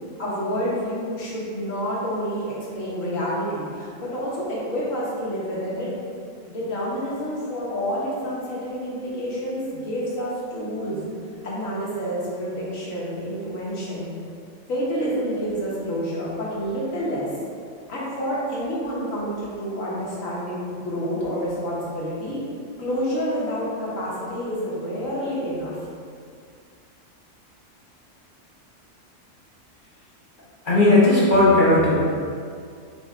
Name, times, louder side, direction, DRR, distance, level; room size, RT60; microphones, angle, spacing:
voice 1, 0.2-5.9 6.5-11.1 11.4-14.1 14.7-17.3 17.9-22.4 22.8-25.8, equal, 90° left, -6 dB, 1.5 m, -28 dB
voice 2, 30.6-31.9, left 2 dB, 45° left, -8 dB, 0.9 m, -16 dB
5.9 x 2.2 x 3.5 m, 2.3 s
omnidirectional pair, 1.3 m